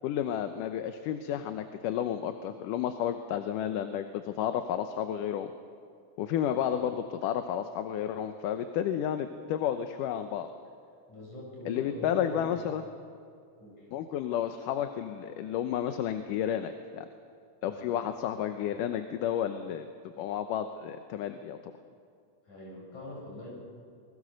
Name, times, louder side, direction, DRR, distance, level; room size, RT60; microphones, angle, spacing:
voice 1, 0.0-5.5 6.2-10.5 11.7-12.8 13.9-17.1 17.6-19.9 20.2-21.6, left 10 dB, 85° left, 8 dB, 2.4 m, -31 dB
voice 2, 6.5-6.8 11.1-12.7 13.6-13.9 17.7-17.9 22.4-23.5, left 1 dB, 65° left, -3 dB, 8.7 m, -43 dB
28.0 x 21.5 x 6.4 m, 2.3 s
omnidirectional pair, 3.7 m